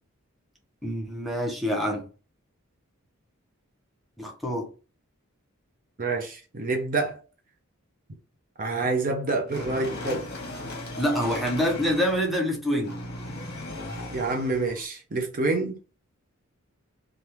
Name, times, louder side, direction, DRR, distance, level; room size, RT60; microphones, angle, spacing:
voice 1, 0.8-2.1 4.2-4.7 11.0-13.0, equal, ahead, 0.7 m, -26 dB
voice 2, 6.0-7.2 8.6-10.2 14.1-15.8, right 3 dB, 40° right, 0.6 m, -27 dB
sound 1, 9.5-12.4 12.8-14.8, left 1 dB, 50° left, 1.0 m, -37 dB
3.3 x 2.4 x 2.8 m
head